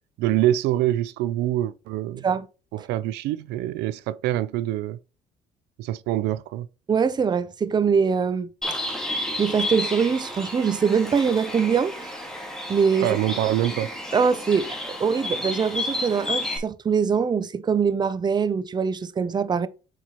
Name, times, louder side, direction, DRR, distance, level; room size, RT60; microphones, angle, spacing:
voice 1, 0.2-2.2 2.7-5.0 5.8-6.7 13.0-13.9, right 13 dB, 85° right, 0.4 m, -25 dB
voice 2, 6.9-8.5 9.4-12.2 12.7-13.1 14.1-19.7, right 6 dB, 25° right, 0.5 m, -23 dB
Bird, 8.6-16.6, left 1 dB, 5° left, 1.8 m, -31 dB
8.0 x 4.5 x 3.0 m
cardioid pair, 110°, 17 cm